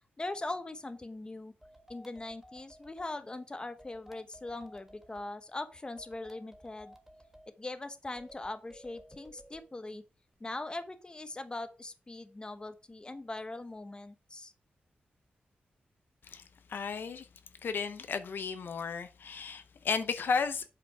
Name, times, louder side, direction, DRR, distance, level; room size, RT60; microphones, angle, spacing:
voice 1, 0.2-1.5 1.9-6.9 7.6-10.0 10.4-14.5, left 2 dB, 25° left, 1.0 m, -41 dB
sound 1, 1.6-3.2 3.8-5.3 6.0-7.5 8.2-9.7, equal, 10° right, 1.4 m, -56 dB
voice 2, 16.7-17.3 17.6-20.6, left 5 dB, 75° left, 0.7 m, -33 dB
7.9 x 5.1 x 4.6 m
wide cardioid pair, 95°, 4 cm